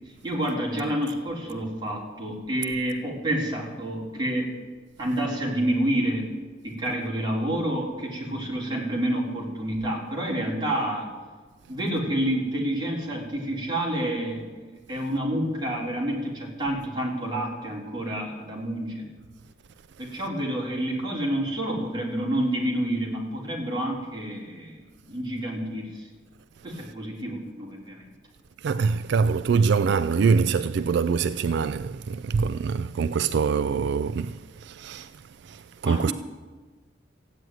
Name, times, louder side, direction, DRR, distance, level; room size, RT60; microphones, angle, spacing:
voice 1, 0.2-4.5 5.0-6.3 6.6-11.1 11.7-19.1 20.0-24.8 25.1-26.1 26.6-28.0 35.8-36.1, right 1 dB, 25° right, 3.8 m, -28 dB
voice 2, 28.6-35.1 35.4-36.1, right 5 dB, 65° right, 0.3 m, -24 dB
14.5 x 9.5 x 9.3 m
head